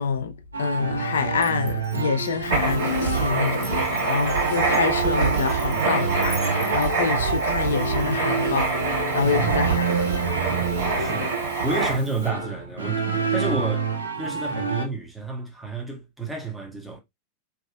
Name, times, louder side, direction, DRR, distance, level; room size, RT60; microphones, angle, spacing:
voice 1, 0.0-8.8 9.1-10.3, left 5 dB, 65° left, 0.4 m, -27 dB
sound 1, 0.5-14.9, right 3 dB, 75° right, 0.5 m, -28 dB
Glass, 1.4-7.8, right 2 dB, 25° right, 1.8 m, -43 dB
Writing, 2.4-12.2, right 4 dB, 60° right, 1.3 m, -26 dB
voice 2, 9.2-9.6 10.9-11.3 11.6-13.9 14.2-17.0, right 3 dB, ahead, 0.7 m, -30 dB
2.7 x 2.4 x 2.3 m
figure-of-eight pair, 90°, 0 cm